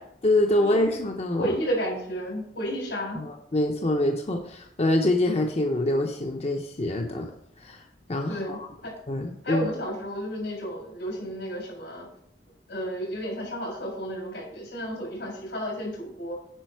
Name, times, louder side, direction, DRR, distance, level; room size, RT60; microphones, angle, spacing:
voice 1, 0.2-1.5 3.2-7.3 7.6-7.8 8.1-8.7 9.1-9.7, left 1 dB, 35° left, 3 dB, 0.6 m, -25 dB
voice 2, 1.4-3.2 8.3-8.9 9.4-12.1 12.7-16.4, equal, 90° left, -1 dB, 3.8 m, -32 dB
9.0 x 5.1 x 4.6 m, 0.72 s
head